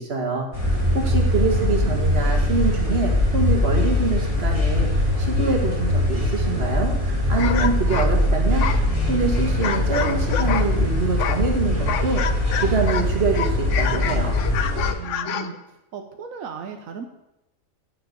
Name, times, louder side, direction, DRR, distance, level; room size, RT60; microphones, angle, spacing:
voice 1, 0.0-4.9 5.2-14.3, right 3 dB, 50° right, 2 dB, 2.1 m, -25 dB
sound 1, 0.5-14.9, left 1 dB, 25° right, 2.6 m, -22 dB
voice 2, 0.8-1.9 15.0-15.6 15.9-17.0, right 6 dB, 85° right, 5 dB, 1.2 m, -36 dB
sound 2, 7.4-10.8 11.2-13.1 13.3-15.6, left 8 dB, 70° left, 1.0 m, -28 dB
9.4 x 7.3 x 6.7 m, 0.93 s
omnidirectional pair, 1.4 m